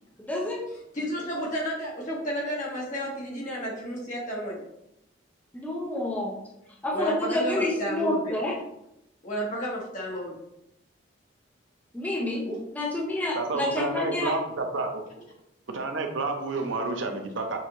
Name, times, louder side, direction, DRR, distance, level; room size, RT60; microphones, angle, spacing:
voice 1, 0.2-0.7 5.5-6.3 6.8-8.5 11.9-12.4 12.7-14.3, left 1 dB, 10° left, -3 dB, 0.6 m, -28 dB
voice 2, 0.9-4.6 6.9-8.4 9.2-10.3 12.4-12.6, equal, 40° left, -4 dB, 1.4 m, -32 dB
voice 3, 13.4-15.0 15.7-17.6, right 3 dB, 85° right, 4 dB, 0.7 m, -30 dB
6.1 x 2.6 x 3.0 m, 0.82 s
head